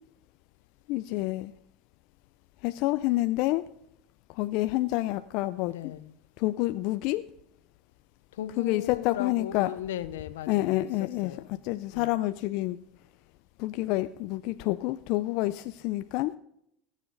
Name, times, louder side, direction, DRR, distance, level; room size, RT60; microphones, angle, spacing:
voice 1, 0.9-1.5 2.6-3.6 4.3-5.9 6.4-7.2 8.6-9.7 10.5-12.8 13.6-16.3, left 17 dB, 65° left, 0.5 m, -28 dB
voice 2, 5.6-6.1 8.3-11.6 11.9-12.1, left 11 dB, 85° left, 0.8 m, -38 dB
19.5 x 7.3 x 4.0 m
hypercardioid pair, 90°, 0 cm